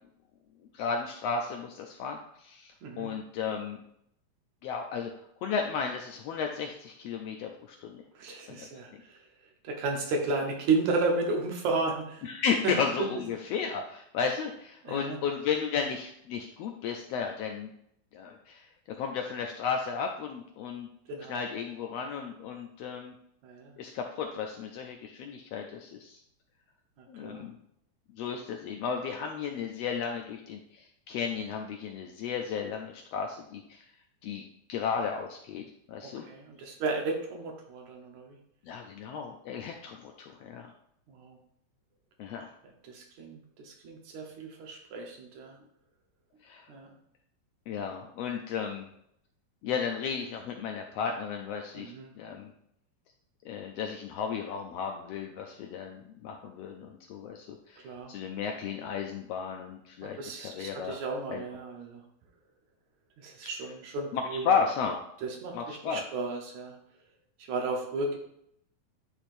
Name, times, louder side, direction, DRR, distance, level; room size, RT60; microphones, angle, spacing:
voice 1, 0.7-3.8 4.6-5.1 5.4-8.0 8.5-8.7 10.0-10.2 12.2-17.7 18.1-20.9 21.3-23.1 23.8-26.2 27.1-27.5 28.2-33.8 34.2-34.4 34.7-36.3 38.6-40.7 42.2-42.5 46.4-46.7 47.7-48.9 49.6-52.5 53.4-61.0 61.3-61.5 63.4-63.7 64.1-65.0 65.5-66.0, left 6 dB, 80° left, 3 dB, 1.5 m, -34 dB
voice 2, 2.8-3.1 8.2-9.2 9.6-12.2 12.6-12.7 14.8-15.2 21.1-21.4 23.4-23.7 27.2-27.5 36.0-38.4 41.1-41.4 42.8-45.6 46.7-46.9 51.8-52.1 57.8-58.1 60.0-62.0 63.2-64.5 65.2-66.8 67.5-68.2, right 3 dB, 80° right, 1 dB, 2.4 m, -33 dB
9.9 x 4.4 x 2.6 m, 0.73 s
omnidirectional pair, 3.3 m